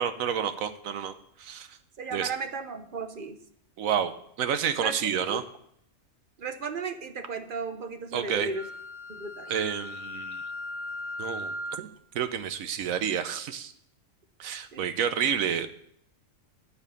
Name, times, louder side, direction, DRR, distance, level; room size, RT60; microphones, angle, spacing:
voice 1, 0.0-1.8 2.1-2.3 3.8-5.4 8.1-8.5 9.5-10.5 11.2-11.9 12.1-13.7 14.4-15.7, right 8 dB, 90° right, 10 dB, 1.2 m, -29 dB
voice 2, 2.0-3.4 4.8-5.0 5.2-5.4 6.4-8.7 9.1-9.5 14.7-14.8, right 4 dB, 45° right, 8 dB, 0.9 m, -35 dB
Wind instrument woodwind instrument, 8.5-11.9, left 1 dB, 25° right, 2.0 m, -38 dB
12.5 x 4.8 x 8.2 m, 0.70 s
omnidirectional pair, 1.4 m